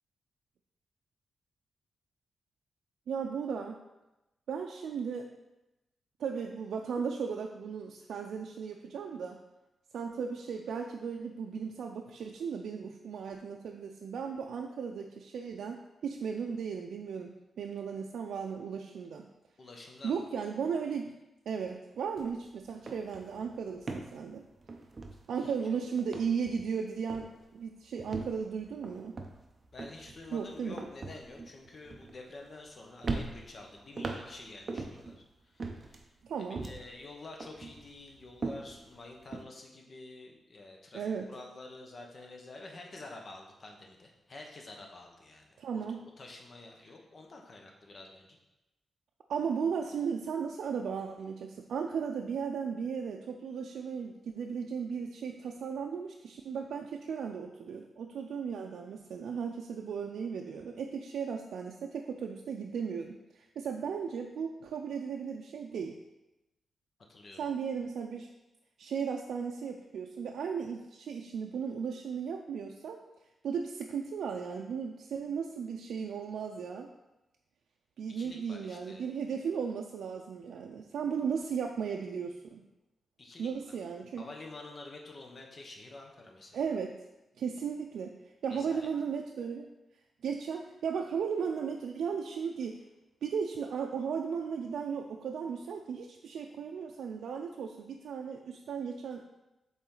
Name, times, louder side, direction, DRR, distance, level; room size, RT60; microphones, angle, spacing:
voice 1, 3.1-3.8 4.5-5.3 6.2-9.4 9.9-17.3 17.6-19.3 20.0-21.1 21.5-24.5 25.3-29.2 30.3-30.8 36.2-36.6 40.9-41.3 45.6-46.0 49.3-66.0 67.4-68.3 68.8-73.0 73.4-76.9 78.0-82.6 83.4-84.2 86.5-86.9 87.4-88.1 88.4-89.7 90.2-92.8 93.2-99.2, right 6 dB, 90° right, 2 dB, 0.4 m, -36 dB
voice 2, 19.6-20.3 25.4-25.5 29.7-36.1 36.5-45.8 46.2-48.4 67.1-67.4 78.1-79.1 83.2-83.8 84.2-86.6 88.5-88.9, left 2 dB, 40° left, 1 dB, 1.0 m, -49 dB
sound 1, 22.2-22.4 22.7-25.7 26.0-26.8 27.1-27.5 28.0-32.7 33.0-35.2 35.6-37.0 37.4-39.4, right 3 dB, 35° right, 0.6 m, -41 dB
7.1 x 4.1 x 3.8 m, 0.98 s
wide cardioid pair, 135°, 0 cm